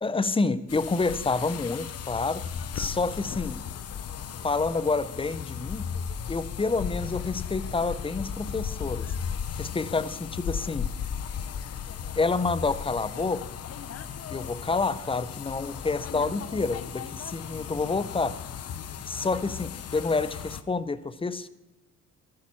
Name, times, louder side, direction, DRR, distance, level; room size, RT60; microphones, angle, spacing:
voice 1, 0.0-2.4 2.7-3.6 4.4-5.9 6.3-9.1 9.6-10.9 12.2-13.4 14.3-18.4 19.1-21.5, left 3 dB, 20° left, 0.7 m, -28 dB
sound 1, 0.7-20.6, left 7 dB, 55° left, 0.9 m, -36 dB
14.5 x 11.0 x 6.0 m
cardioid pair, 90°, 30 cm